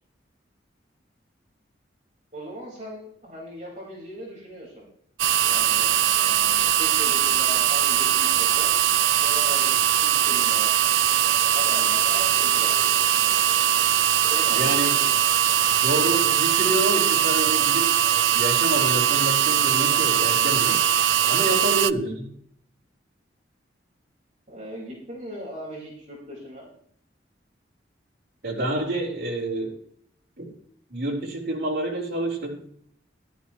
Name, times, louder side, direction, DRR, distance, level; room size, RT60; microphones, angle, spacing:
voice 1, 2.3-4.9 5.4-8.7 9.2-10.7 11.0-13.5 14.2-14.8 21.2-21.5 24.5-26.7, equal, 40° right, -5 dB, 4.8 m, -39 dB
sound 1, 5.2-21.9, right 10 dB, 85° right, 0.4 m, -21 dB
voice 2, 14.5-15.0 15.8-17.9 18.2-20.8 21.3-22.3 28.4-29.7 30.4-30.5 30.9-32.6, right 1 dB, 55° right, -3 dB, 4.3 m, -28 dB
14.5 x 12.5 x 3.1 m, 0.65 s
head